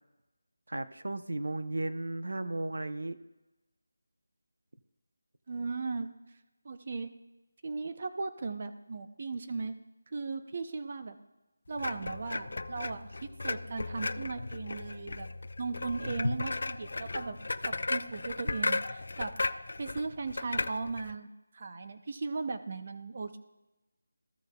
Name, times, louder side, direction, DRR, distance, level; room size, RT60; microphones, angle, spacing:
voice 1, 0.7-3.2, right 2 dB, 80° right, 10 dB, 0.8 m, -35 dB
voice 2, 5.5-6.1 6.6-7.1 7.6-9.7 10.1-11.2 11.7-15.3 15.6-17.4 17.7-19.4 19.8-21.3 21.5-23.4, right 4 dB, 35° right, 9 dB, 0.6 m, -37 dB
sound 1, 11.8-21.1, left 3 dB, 55° left, 0.4 m, -35 dB
15.0 x 6.9 x 2.3 m, 1.0 s
figure-of-eight pair, 175°, 0 cm